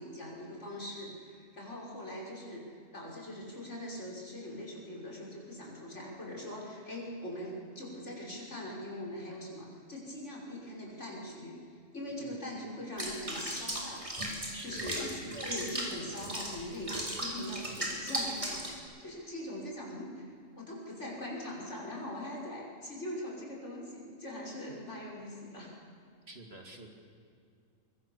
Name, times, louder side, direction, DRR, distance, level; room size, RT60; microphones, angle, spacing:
voice 1, 0.0-14.3 14.6-15.2 15.5-18.7 19.0-20.3 20.6-25.7, left 1 dB, 55° left, -3 dB, 6.1 m, -42 dB
Water / Bathtub (filling or washing), 13.0-18.8, right 1 dB, 25° right, 3.6 m, -37 dB
voice 2, 14.5-14.9 15.2-15.6 26.3-26.9, right 1 dB, 50° right, 3 dB, 2.8 m, -47 dB
24.5 x 23.5 x 7.3 m, 2.4 s
omnidirectional pair, 1.4 m